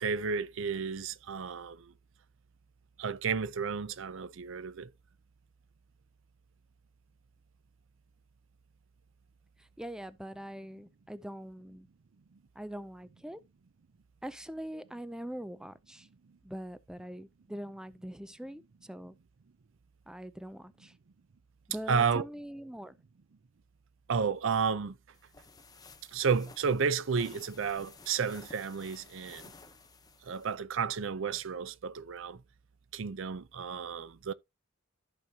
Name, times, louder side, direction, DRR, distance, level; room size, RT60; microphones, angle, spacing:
voice 1, 0.0-1.9 3.0-4.9 21.9-22.2 24.1-25.0 26.1-29.5 30.2-32.4 32.9-34.3, right 6 dB, 70° right, 0.5 m, -32 dB
voice 2, 9.6-11.9 12.6-13.4 14.2-16.1 16.4-19.1 20.1-20.9 21.7-23.0, equal, 5° right, 0.5 m, -43 dB
sound 1, 25.1-30.6, left 4 dB, 20° left, 0.9 m, -54 dB
13.5 x 5.1 x 2.8 m
head